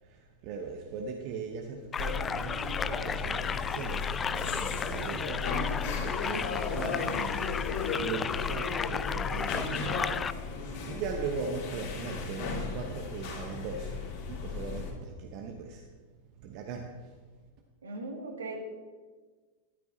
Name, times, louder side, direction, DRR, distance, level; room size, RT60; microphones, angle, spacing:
voice 1, 0.0-7.1 7.9-9.8 10.2-15.9 16.4-17.2, right 5 dB, 45° right, 3 dB, 0.9 m, -39 dB
sound 1, 1.9-10.3, left 6 dB, 20° left, 0.3 m, -34 dB
sound 2, 2.0-14.9, left 4 dB, 45° left, 3.4 m, -35 dB
voice 2, 17.8-18.6, right 2 dB, 70° right, 2 dB, 1.9 m, -38 dB
13.5 x 12.5 x 2.7 m, 1.4 s
figure-of-eight pair, 90°, 0 cm